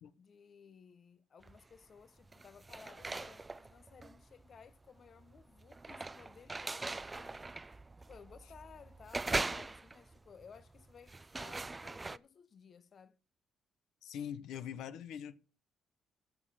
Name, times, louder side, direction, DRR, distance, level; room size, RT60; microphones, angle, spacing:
voice 1, 0.2-7.8 8.1-13.2, left 6 dB, 50° left, 0.7 m, -58 dB
sound 1, 1.4-1.8 2.2-12.2, right 3 dB, 20° right, 0.5 m, -41 dB
voice 2, 14.0-15.3, left 9 dB, 85° left, 1.0 m, -42 dB
14.5 x 6.7 x 5.7 m
cardioid pair, 90°, 0 cm